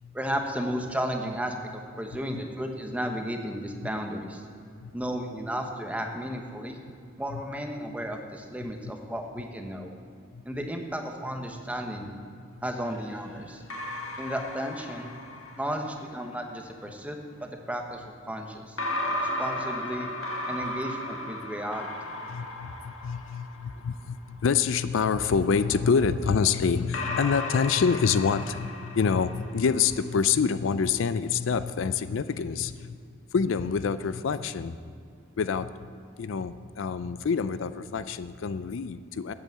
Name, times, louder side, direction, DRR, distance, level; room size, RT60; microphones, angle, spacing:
voice 1, 0.1-4.4 4.9-6.8 7.2-9.9 10.4-12.1 12.6-13.6 14.2-15.1 15.6-18.8 19.2-20.1 20.5-21.9, equal, 5° right, 3 dB, 1.0 m, -33 dB
voice 2, 4.8-5.1 7.3-7.4 10.3-10.4 22.3-33.0 33.3-34.7 35.4-35.9 36.2-39.3, left 6 dB, 70° left, 13 dB, 0.4 m, -27 dB
sound 1, 12.8-16.3 18.8-24.2 25.4-30.0, left 1 dB, 85° left, 1.6 m, -36 dB
9.1 x 8.4 x 7.4 m, 2.4 s
head